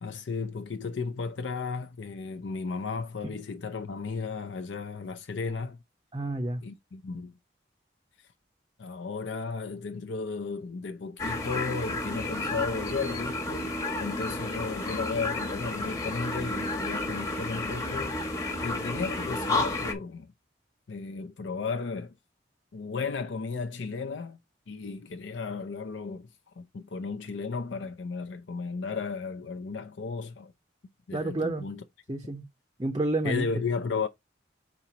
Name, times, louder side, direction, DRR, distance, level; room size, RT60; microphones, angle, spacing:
voice 1, 0.0-5.8 6.6-7.3 8.8-18.2 18.6-20.3 20.9-22.1 22.7-24.4 24.7-26.3 26.6-30.5 31.1-31.8 33.2-34.1, left 4 dB, 80° left, 0.5 m, -34 dB
voice 2, 6.1-6.6 31.1-31.7 32.1-32.5 32.8-33.5, right 2 dB, 25° right, 0.5 m, -30 dB
sound 1, 11.2-19.9, left 2 dB, 20° left, 1.1 m, -31 dB
4.4 x 4.0 x 5.6 m
head